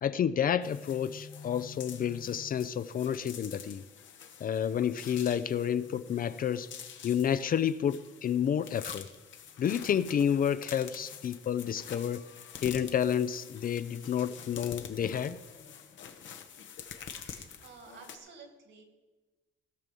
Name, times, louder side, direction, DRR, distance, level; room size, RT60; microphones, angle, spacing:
voice 1, 0.0-3.8 4.4-6.7 7.0-9.1 9.6-12.2 12.6-15.4, left 8 dB, 45° left, 14 dB, 0.4 m, -30 dB
sound 1, 0.6-18.2, left 7 dB, 70° left, 1.0 m, -47 dB
voice 2, 17.2-18.8, right 5 dB, 70° right, 4 dB, 2.4 m, -52 dB
16.0 x 6.1 x 5.3 m, 1.2 s
cardioid pair, 90°, 20 cm